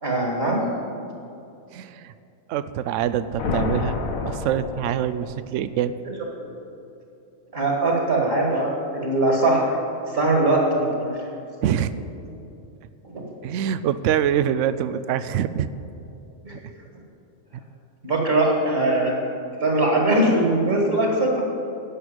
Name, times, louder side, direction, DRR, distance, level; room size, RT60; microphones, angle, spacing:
voice 1, 0.0-0.7 6.4-6.5 7.5-9.8 10.1-11.1 13.0-13.2 16.4-16.6 18.0-19.2 19.6-21.5, right 2 dB, 45° right, -1 dB, 2.3 m, -21 dB
voice 2, 1.7-2.1 2.5-4.0 4.2-5.9 11.6-11.9 13.4-15.7 16.5-16.6, right 9 dB, 70° right, 14 dB, 0.9 m, -24 dB
sound 1, 3.0-5.6, left 4 dB, 85° left, 1.4 m, -29 dB
16.5 x 6.4 x 8.9 m, 2.7 s
omnidirectional pair, 1.4 m